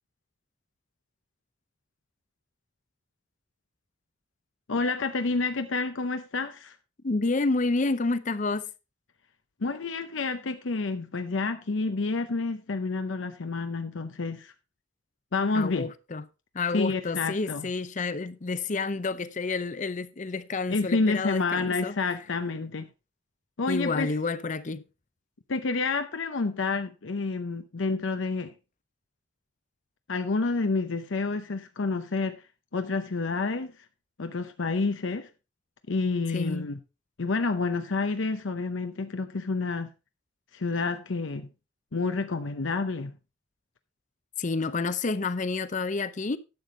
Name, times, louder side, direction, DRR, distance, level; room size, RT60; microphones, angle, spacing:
voice 1, 4.7-6.7 9.6-14.5 15.3-15.9 16.7-17.7 20.7-22.9 23.6-24.1 25.5-28.5 30.1-32.4 32.7-33.7 34.2-35.3 35.9-36.8 37.2-39.9 40.5-41.5 41.9-43.2, left 3 dB, 80° left, 0.7 m, -29 dB
voice 2, 7.0-8.7 15.5-16.3 16.5-22.0 23.7-24.8 36.3-36.7 44.4-46.4, left 3 dB, 40° left, 0.6 m, -29 dB
11.5 x 7.0 x 3.8 m
head